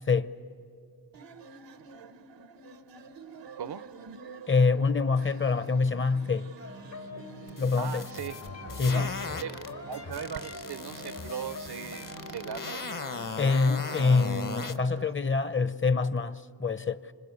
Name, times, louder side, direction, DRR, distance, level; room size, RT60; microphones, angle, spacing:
sound 1, 1.1-15.1, right 5 dB, 90° right, 1.0 m, -48 dB
voice 1, 3.6-3.9 7.8-8.4 8.9-12.9, right 8 dB, 65° right, 0.6 m, -39 dB
voice 2, 4.5-6.5 7.6-8.1 8.8-9.1 13.4-17.1, left 4 dB, 30° left, 0.8 m, -25 dB
sound 2, 6.6-12.8, left 3 dB, 80° left, 3.9 m, -43 dB
sound 3, 7.5-9.7 10.1-14.8, left 4 dB, 50° left, 1.2 m, -38 dB
27.0 x 26.0 x 8.3 m
cardioid pair, 45°, 42 cm